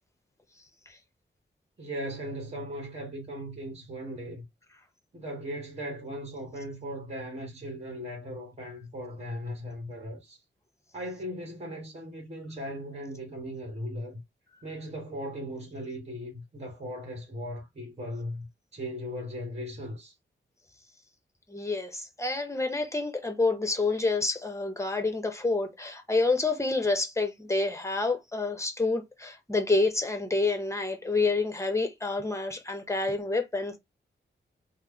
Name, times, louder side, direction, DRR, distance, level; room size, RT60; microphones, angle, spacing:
voice 1, 1.8-4.4 5.1-10.4 10.9-14.2 14.6-20.1, equal, 35° right, 1.3 m, -38 dB
voice 2, 21.5-33.8, left 3 dB, 15° left, 0.8 m, -28 dB
3.0 x 2.0 x 3.6 m
wide cardioid pair, 110°, 19 cm